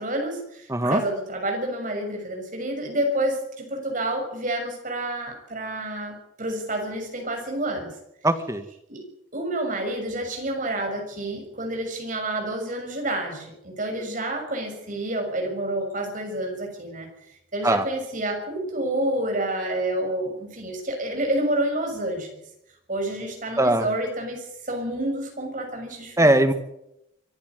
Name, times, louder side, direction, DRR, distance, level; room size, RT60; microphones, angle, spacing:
voice 1, 0.0-7.9 8.9-9.0 9.3-17.1 17.5-22.3 22.9-26.3, right 1 dB, 45° right, 3 dB, 6.5 m, -29 dB
voice 2, 0.7-1.0 8.2-8.6 17.6-17.8 23.6-23.9 26.2-26.5, right 1 dB, 15° right, 9 dB, 1.7 m, -20 dB
24.5 x 11.5 x 9.5 m, 0.82 s
head